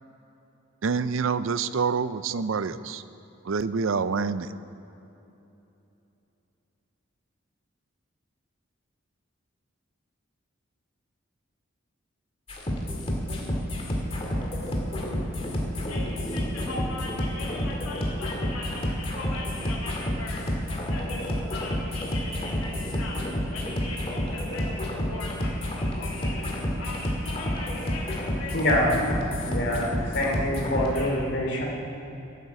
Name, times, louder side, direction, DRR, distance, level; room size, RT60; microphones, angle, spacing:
voice 1, 0.8-3.0 3.4-4.5, right 5 dB, 70° right, 14 dB, 0.5 m, -27 dB
sound 1, 12.5-31.1, equal, 30° left, 1.9 m, -30 dB
voice 2, 15.9-20.4 20.9-28.8 30.9-31.1, left 2 dB, 85° left, -4 dB, 1.9 m, -39 dB
voice 3, 28.5-29.0 29.4-29.9 30.1-31.7, left 1 dB, 55° left, -1 dB, 2.8 m, -25 dB
12.5 x 10.0 x 7.4 m, 2.9 s
head